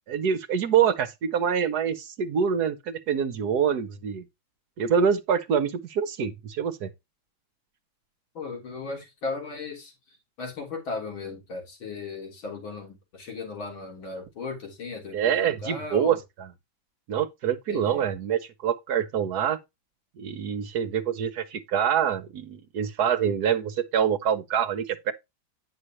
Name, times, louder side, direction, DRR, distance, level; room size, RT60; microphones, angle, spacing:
voice 1, 0.1-4.2 4.8-6.9 15.1-16.2 17.1-19.6 20.2-25.1, right 8 dB, 60° right, 1.2 m, -25 dB
voice 2, 8.3-16.2 17.7-18.1, left 4 dB, 90° left, 4.2 m, -36 dB
9.9 x 6.4 x 2.9 m
omnidirectional pair, 2.1 m